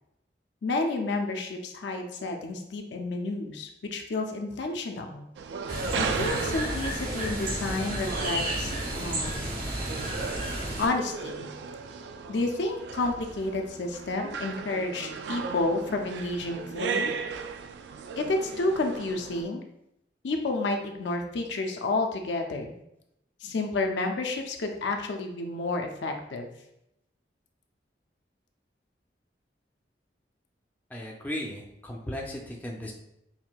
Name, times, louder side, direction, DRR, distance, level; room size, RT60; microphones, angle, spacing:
voice 1, 0.6-5.3 6.0-9.4 10.8-11.5 12.3-17.1 18.2-19.6 20.2-22.7 23.4-26.5, left 2 dB, 80° left, 4 dB, 0.5 m, -30 dB
sound 1, 5.4-19.4, right 5 dB, 75° right, 0.3 m, -36 dB
sound 2, 5.7-10.9, right 1 dB, 50° right, 1.1 m, -32 dB
voice 2, 30.9-32.9, left 1 dB, 10° left, -2 dB, 0.4 m, -36 dB
5.6 x 2.6 x 2.2 m, 0.81 s
head